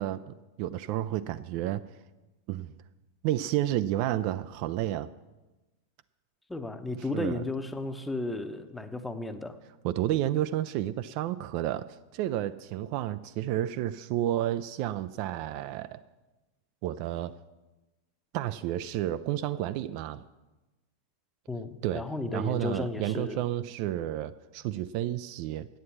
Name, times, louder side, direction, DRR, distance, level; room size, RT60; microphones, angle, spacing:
voice 1, 0.0-1.8 2.5-2.7 3.2-5.1 7.1-7.4 9.8-16.0 16.8-17.4 18.3-20.2 21.8-22.1 22.3-25.7, right 13 dB, 45° right, 12 dB, 0.3 m, -31 dB
voice 2, 6.5-9.6 21.5-23.4, left 2 dB, 5° left, 9 dB, 0.8 m, -34 dB
9.3 x 8.4 x 7.2 m, 1.1 s
figure-of-eight pair, 90°, 0 cm